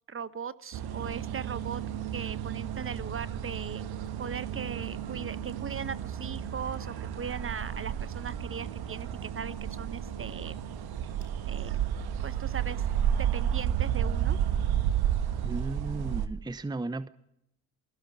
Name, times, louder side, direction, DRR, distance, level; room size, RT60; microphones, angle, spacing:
voice 1, 0.1-1.8 2.1-3.9 4.2-10.6 11.5-11.8 12.2-12.8 13.2-14.4, right 6 dB, 25° right, 1.3 m, -39 dB
sound 1, 0.7-16.3, right 10 dB, 50° right, 1.7 m, -32 dB
Motor vehicle (road) / Siren, 1.0-15.5, left 6 dB, 50° left, 4.7 m, -52 dB
sound 2, 9.5-11.5 11.8-12.3 12.6-13.1 13.3-13.6 13.9-14.0 14.7-15.1, right 3 dB, 90° right, 3.3 m, -55 dB
voice 2, 15.4-17.1, right 2 dB, 10° right, 0.9 m, -35 dB
28.5 x 20.5 x 4.9 m
figure-of-eight pair, 55°, 46 cm